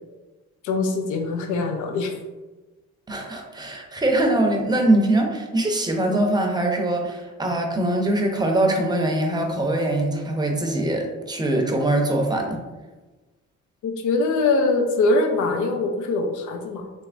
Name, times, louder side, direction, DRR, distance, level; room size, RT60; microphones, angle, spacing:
voice 1, 0.6-2.1 13.8-16.9, left 3 dB, 85° left, 4 dB, 0.5 m, -22 dB
voice 2, 3.1-12.6, right 1 dB, 15° right, 2 dB, 0.6 m, -22 dB
3.3 x 3.0 x 2.5 m, 1.2 s
cardioid pair, 90°, 30 cm